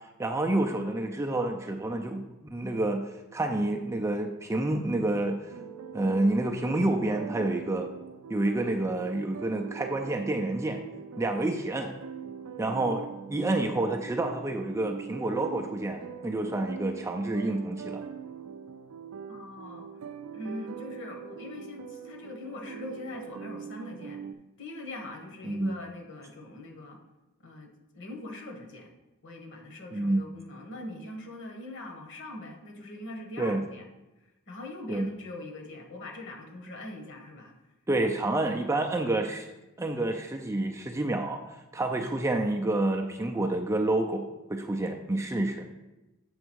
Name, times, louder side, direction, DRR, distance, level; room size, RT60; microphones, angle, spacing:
voice 1, 0.2-2.2 2.5-3.0 3.3-5.4 5.9-7.9 8.3-10.8 11.2-11.9 12.6-18.0 25.4-25.8 29.9-30.2 33.4-33.6 34.9-35.1 37.9-39.5 39.8-45.7, right 2 dB, 15° right, 3 dB, 0.4 m, -28 dB
sound 1, 5.5-24.3, right 7 dB, 75° right, 0.4 m, -42 dB
voice 2, 19.3-19.9 20.3-24.2 24.6-27.0 27.4-28.9 29.2-33.8 34.2-37.5, left 2 dB, 55° left, 3 dB, 1.4 m, -42 dB
7.9 x 3.5 x 6.2 m, 1.0 s
head